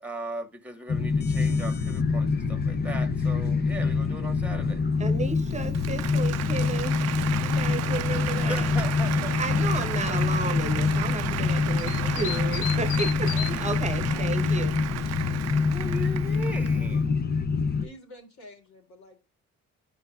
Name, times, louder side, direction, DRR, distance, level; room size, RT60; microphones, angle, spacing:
voice 1, 0.0-4.9 8.3-9.4 10.1-10.2 13.3-13.7 15.7-17.1, right 1 dB, 5° right, 1.7 m, -38 dB
sound 1, 0.9-17.9, left 4 dB, 35° left, 0.7 m, -26 dB
voice 2, 5.0-7.0 7.3-8.7 9.4-14.7, right 3 dB, 25° right, 1.1 m, -33 dB
Applause, 5.3-16.9, right 13 dB, 60° right, 0.4 m, -35 dB
sound 2, 8.9-14.4, left 13 dB, 90° left, 0.5 m, -39 dB
voice 3, 11.9-12.6 13.8-14.3 15.4-16.0 16.2-16.3 16.9-17.0 17.8-19.2, left 3 dB, 65° left, 3.4 m, -48 dB
12.5 x 5.4 x 2.5 m
cardioid pair, 90°, 30 cm